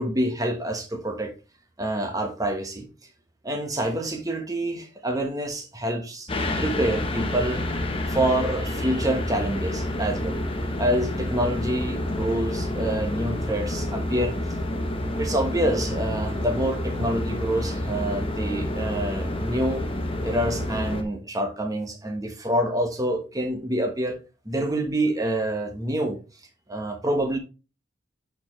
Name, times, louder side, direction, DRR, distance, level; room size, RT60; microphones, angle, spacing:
voice 1, 0.0-1.3 1.8-2.9 3.4-6.3 6.6-7.6 8.1-10.4 10.8-14.3 15.2-19.8 20.2-24.2 24.4-26.2 26.7-27.4, right 1 dB, 20° right, 1.3 m, -27 dB
sound 1, 6.3-21.0, left 1 dB, 30° left, 1.0 m, -29 dB
10.5 x 4.6 x 3.1 m
head